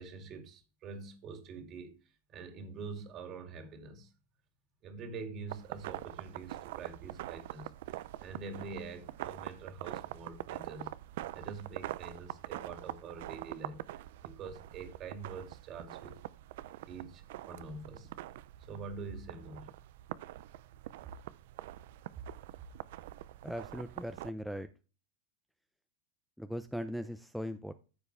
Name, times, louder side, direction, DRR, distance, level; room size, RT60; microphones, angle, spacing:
voice 1, 0.0-2.0 2.3-4.1 4.8-10.9 11.3-13.8 14.2-16.2 16.9-18.1 18.6-19.7 22.1-22.2, right 4 dB, 35° right, 2.3 m, -45 dB
sound 1, 5.5-24.3, right 15 dB, 65° right, 0.5 m, -45 dB
voice 2, 23.4-24.7 26.4-27.7, equal, ahead, 0.5 m, -39 dB
14.0 x 4.8 x 3.4 m
supercardioid pair, 130°, 0 cm